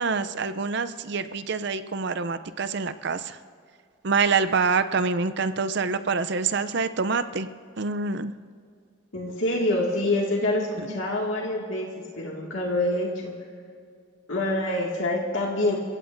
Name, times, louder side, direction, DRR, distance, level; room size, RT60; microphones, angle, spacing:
voice 1, 0.0-3.4 4.0-7.5 7.8-8.3 10.5-10.6, right 4 dB, 55° right, 12 dB, 0.5 m, -26 dB
voice 2, 9.1-11.9 12.2-13.3 14.3-15.8, left 1 dB, 70° left, -2 dB, 2.1 m, -26 dB
29.5 x 16.0 x 2.6 m, 2.2 s
head